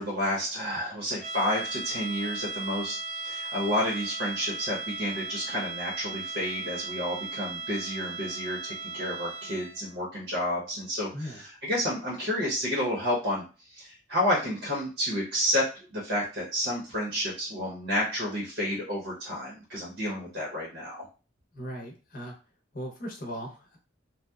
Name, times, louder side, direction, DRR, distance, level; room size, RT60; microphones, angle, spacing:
voice 1, 0.0-21.1, equal, 65° right, -4 dB, 0.8 m, -30 dB
sound 1, 1.2-9.9, right 4 dB, 20° right, 0.8 m, -37 dB
voice 2, 21.5-22.4 22.7-23.8, equal, 45° left, 0 dB, 0.7 m, -38 dB
2.8 x 2.1 x 2.2 m, 0.34 s
head